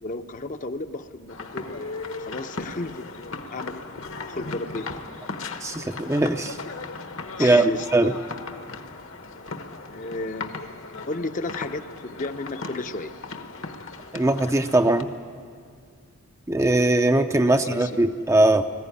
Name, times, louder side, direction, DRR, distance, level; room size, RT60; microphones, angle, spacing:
voice 1, 0.0-4.9 7.4-8.2 9.9-10.6 11.1-13.1 17.5-18.0, left 2 dB, 35° left, 8 dB, 0.7 m, -34 dB
sound 1, 1.3-15.0, left 3 dB, 60° left, 1.2 m, -37 dB
voice 2, 5.6-6.6 7.4-8.1 14.1-15.1 16.5-18.6, right 2 dB, 15° right, 7 dB, 0.5 m, -20 dB
20.5 x 15.0 x 9.8 m, 2.1 s
head